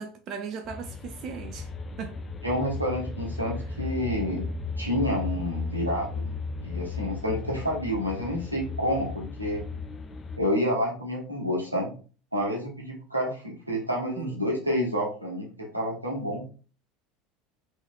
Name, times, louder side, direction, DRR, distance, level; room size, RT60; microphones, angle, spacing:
voice 1, 0.0-1.7 2.0-2.2 14.2-14.4, right 6 dB, 45° right, 0.4 m, -37 dB
sound 1, 0.6-10.4, left 3 dB, 25° left, 0.4 m, -35 dB
voice 2, 2.4-6.3 6.6-9.6 10.4-11.9 12.3-16.4, equal, 85° right, 1.0 m, -29 dB
3.9 x 3.0 x 2.3 m
figure-of-eight pair, 70°, 0 cm